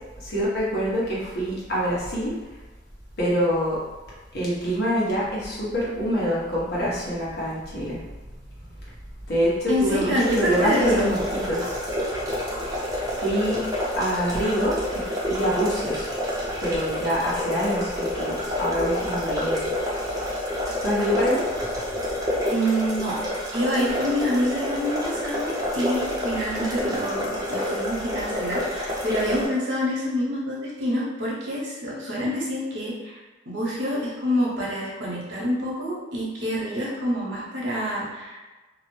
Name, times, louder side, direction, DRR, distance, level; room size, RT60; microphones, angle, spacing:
voice 1, 0.2-2.3 3.2-3.8 4.3-8.0 9.3-11.2 11.5-11.8 12.7-13.6 14.0-16.1 16.6-19.6 20.8-21.5, equal, 65° left, -7 dB, 1.1 m, -25 dB
voice 2, 9.7-10.9 22.5-23.2 23.5-32.9 33.5-38.4, equal, 80° right, -5 dB, 0.9 m, -27 dB
sound 1, 10.2-29.5, left 1 dB, 20° right, 0.6 m, -28 dB
2.8 x 2.1 x 3.1 m, 1.2 s
head